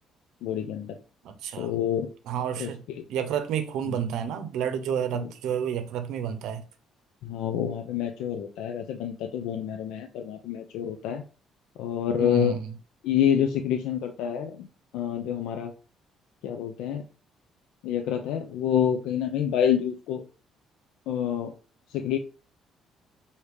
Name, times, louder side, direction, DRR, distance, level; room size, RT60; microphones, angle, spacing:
voice 1, 0.4-1.0 1.6-2.1 2.6-2.7 3.0-3.1 3.9-4.0 5.1-5.3 7.2-11.2 11.8-12.6 13.0-14.7 14.9-15.7 16.4-17.0 17.8-20.2 21.1-21.5 21.9-22.2, left 9 dB, 80° left, 0.5 m, -27 dB
voice 2, 1.2-1.7 2.3-2.8 3.1-6.6 12.2-12.6, right 8 dB, 75° right, 0.7 m, -30 dB
4.8 x 2.8 x 3.3 m
cardioid pair, 155°, 0 cm